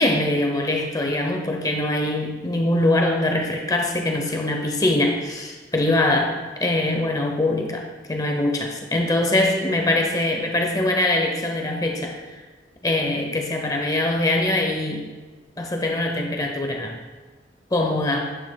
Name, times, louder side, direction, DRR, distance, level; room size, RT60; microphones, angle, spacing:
voice 1, 0.0-12.2 12.8-15.1 15.6-17.0 17.7-18.3, left 1 dB, 20° left, 2 dB, 0.7 m, -23 dB
9.2 x 5.6 x 2.3 m, 1.4 s
head